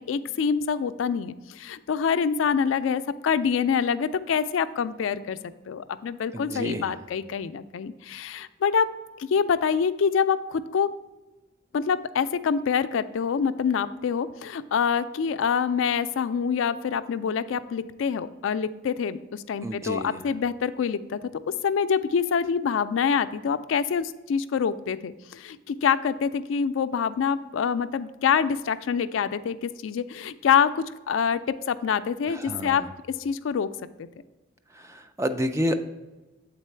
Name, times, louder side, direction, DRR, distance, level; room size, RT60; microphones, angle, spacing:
voice 1, 0.0-5.4 5.7-8.9 9.2-10.9 11.7-21.3 21.6-32.8 33.2-33.7, left 6 dB, 85° left, 13 dB, 0.4 m, -26 dB
voice 2, 6.3-7.0 19.6-20.2 32.3-32.9 34.7-35.7, equal, 15° right, 8 dB, 0.4 m, -30 dB
8.2 x 4.0 x 4.4 m, 1.1 s
head